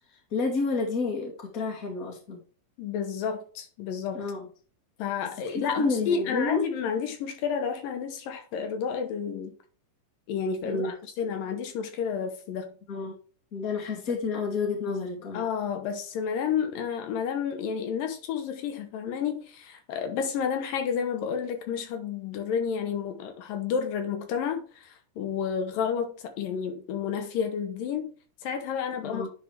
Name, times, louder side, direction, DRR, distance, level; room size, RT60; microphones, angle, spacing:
voice 1, 0.3-2.4 4.1-4.5 5.2-6.6 10.6-10.9 12.9-13.1 13.5-15.4 29.0-29.3, left 3 dB, 30° left, 2.2 m, -30 dB
voice 2, 2.8-4.3 5.0-9.5 10.3-12.7 15.3-28.1 28.4-29.2, left 7 dB, 80° left, 2.9 m, -30 dB
9.9 x 4.3 x 3.3 m
omnidirectional pair, 3.9 m